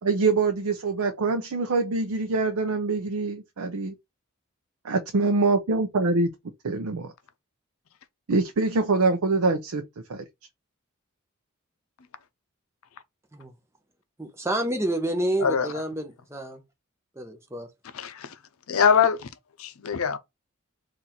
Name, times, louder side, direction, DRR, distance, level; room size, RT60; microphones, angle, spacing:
voice 1, 0.0-3.9 4.9-6.3 6.6-7.1 8.3-9.8 10.1-10.2, right 3 dB, 90° right, 0.6 m, -24 dB
voice 2, 14.2-16.6 17.2-17.7, right 1 dB, 10° right, 0.8 m, -29 dB
voice 3, 17.9-18.3 18.7-19.3 19.6-20.2, left 6 dB, 80° left, 0.5 m, -23 dB
4.0 x 2.6 x 4.2 m
head